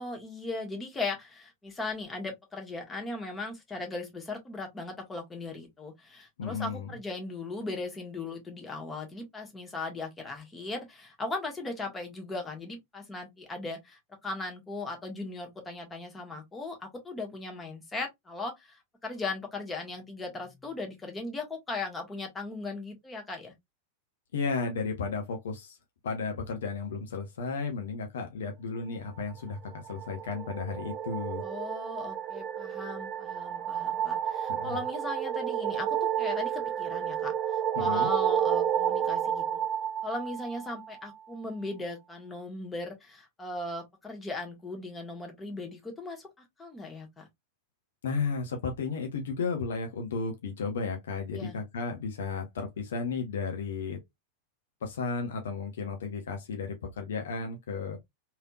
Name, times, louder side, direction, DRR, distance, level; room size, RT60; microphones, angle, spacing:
voice 1, 0.0-23.5 31.4-39.6 40.0-46.3 46.6-47.3 51.3-51.6, left 2 dB, 15° left, 1.3 m, -38 dB
voice 2, 6.4-7.0 24.3-25.8 26.0-31.4 34.5-34.8 37.8-38.1 48.0-54.0 54.8-58.0, left 4 dB, 60° left, 0.8 m, -34 dB
sound 1, 29.6-41.1, right 9 dB, 30° right, 0.4 m, -31 dB
3.3 x 2.8 x 2.3 m
figure-of-eight pair, 90°, 0 cm